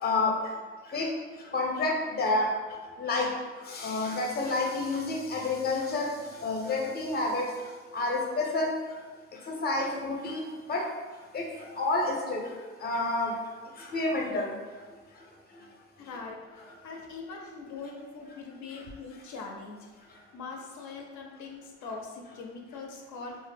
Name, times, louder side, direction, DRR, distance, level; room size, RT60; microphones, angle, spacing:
voice 1, 0.0-0.3 0.9-1.1 1.5-2.5 3.0-3.3 3.7-6.1 6.4-7.5 7.9-8.7 9.6-10.8 11.3-11.5 11.8-12.4 12.8-13.3 13.9-14.5, left 2 dB, 35° left, 0 dB, 0.5 m, -29 dB
voice 2, 16.0-19.9 20.3-23.4, left 4 dB, 80° left, 0 dB, 0.5 m, -42 dB
2.1 x 2.0 x 3.3 m, 1.4 s
cardioid pair, 90°, 30 cm